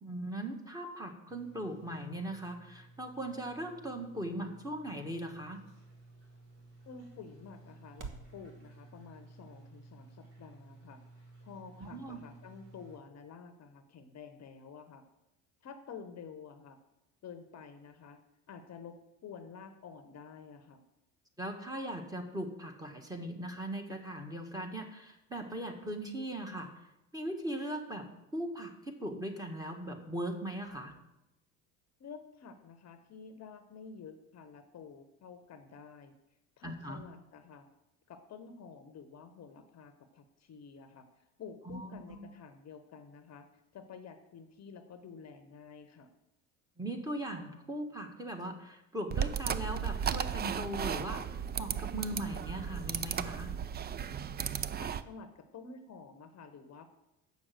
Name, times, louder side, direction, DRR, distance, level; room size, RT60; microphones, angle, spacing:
voice 1, 0.0-5.6 11.8-12.2 21.4-26.7 27.1-30.9 36.6-37.0 41.7-42.2 46.8-51.2 51.6-53.5, right 1 dB, 10° right, 4 dB, 1.7 m, -39 dB
sound 1, 1.3-13.0, right 2 dB, 70° right, 3.7 m, -56 dB
sound 2, 2.1-8.4, right 5 dB, 50° right, 1.3 m, -55 dB
voice 2, 6.9-15.0 15.6-16.8 17.2-18.2 18.5-20.8 32.0-36.1 36.6-37.6 38.1-43.5 43.7-46.1 54.8-56.9, left 5 dB, 40° left, 8 dB, 0.9 m, -50 dB
sound 3, 49.1-55.0, right 8 dB, 25° right, 0.4 m, -35 dB
7.1 x 6.2 x 7.8 m, 0.93 s
hypercardioid pair, 75°, 40 cm